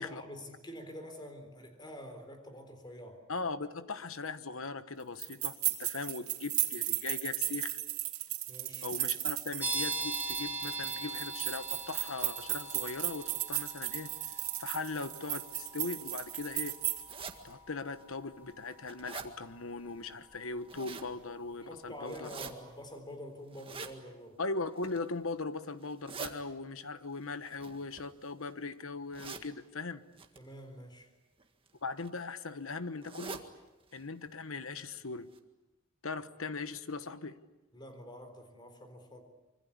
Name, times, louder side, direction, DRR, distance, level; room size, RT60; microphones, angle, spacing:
voice 1, 0.0-3.2 8.5-8.9 21.6-24.4 30.3-31.1 37.7-39.2, equal, 20° left, 6 dB, 4.0 m, -47 dB
voice 2, 3.3-5.5 5.8-7.8 8.8-14.1 14.6-16.7 17.4-22.3 24.4-30.0 31.8-33.4 33.9-35.3 36.0-37.4, left 3 dB, 65° left, 12 dB, 1.2 m, -39 dB
sound 1, 5.2-17.3, right 15 dB, 75° right, 2.9 m, -36 dB
sound 2, 9.6-22.1, right 2 dB, 10° right, 5.1 m, -43 dB
sound 3, 17.1-17.4 18.0-18.1 18.5-19.3 20.4-21.1 22.1-22.5 23.5-23.9 24.7-25.1 25.8-26.3 27.4-28.4 29.1-29.5 30.2-30.4 31.4-31.7 32.0-32.1 32.4-32.5 33.0-33.5 33.9-34.0 34.3-34.4 34.9-35.0 35.3-35.4, right 4 dB, 25° right, 1.9 m, -44 dB
25.5 x 24.5 x 8.6 m, 1.0 s
head